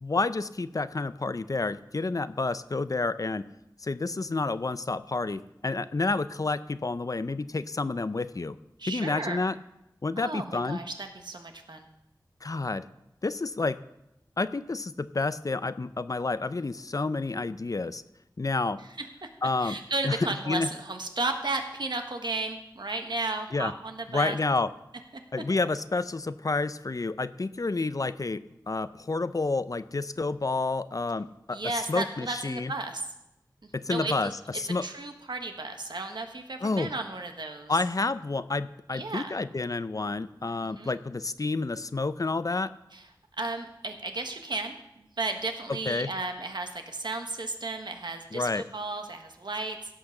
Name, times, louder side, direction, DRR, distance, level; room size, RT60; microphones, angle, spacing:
voice 1, 0.0-3.4 3.8-8.6 8.9-9.6 10.0-10.8 12.4-12.9 13.2-13.8 14.4-18.0 18.4-18.8 19.4-19.8 20.0-20.2 20.5-20.7 23.5-23.7 24.1-24.7 25.3-32.7 33.7-34.9 36.6-36.9 37.7-42.7 45.9-46.1 48.3-48.7, left 3 dB, 50° left, 14 dB, 0.5 m, -29 dB
voice 2, 8.8-9.4 10.2-11.9 19.2-19.3 19.6-24.4 31.5-33.0 33.9-34.3 34.8-37.8 38.9-39.4 40.8-40.9 42.9-43.0 43.4-49.8, right 2 dB, 75° right, 5 dB, 1.4 m, -34 dB
16.5 x 5.9 x 6.5 m, 0.88 s
wide cardioid pair, 60°, 8 cm